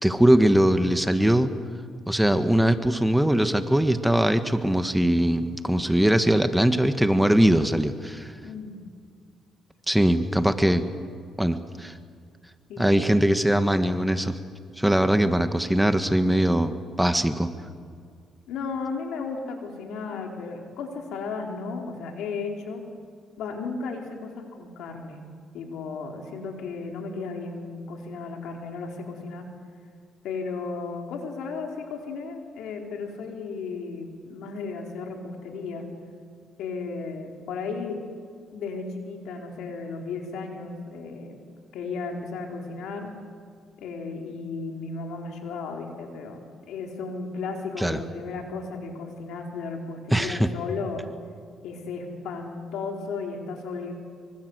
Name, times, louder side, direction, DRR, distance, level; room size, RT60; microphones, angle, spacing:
voice 1, 0.0-1.5 2.1-8.3 9.9-10.8 11.4-11.9 12.8-14.4 14.8-16.7 17.0-17.5 47.8-48.0 50.1-50.5, right 1 dB, 5° right, 9 dB, 1.4 m, -21 dB
voice 2, 8.4-8.8 18.5-22.8 23.4-25.2 25.5-29.4 30.2-35.9 36.6-38.0 38.5-41.4 41.7-43.1 43.8-46.4 46.7-51.0 51.6-53.9, left 4 dB, 85° left, 2 dB, 4.3 m, -34 dB
25.5 x 24.5 x 8.1 m, 2.1 s
cardioid pair, 90°, 0 cm